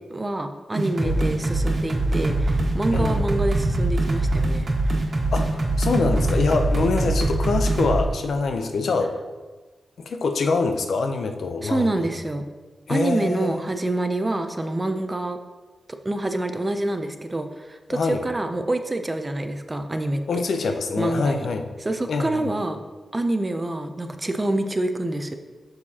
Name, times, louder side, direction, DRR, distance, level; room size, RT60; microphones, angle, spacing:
voice 1, 0.1-4.9 11.6-12.4 12.9-15.4 16.0-20.4 21.0-21.5 21.8-22.8 23.1-25.3, right 2 dB, 20° right, 7 dB, 0.5 m, -27 dB
sound 1, 0.7-8.0, right 2 dB, 45° right, 1.5 m, -22 dB
voice 2, 1.0-1.4 2.9-3.2 5.3-9.2 10.0-11.9 12.9-13.6 17.9-18.2 20.3-21.7 22.1-22.5, left 4 dB, 75° left, 6 dB, 0.6 m, -25 dB
7.1 x 6.3 x 2.8 m, 1.3 s
wide cardioid pair, 135°, 0 cm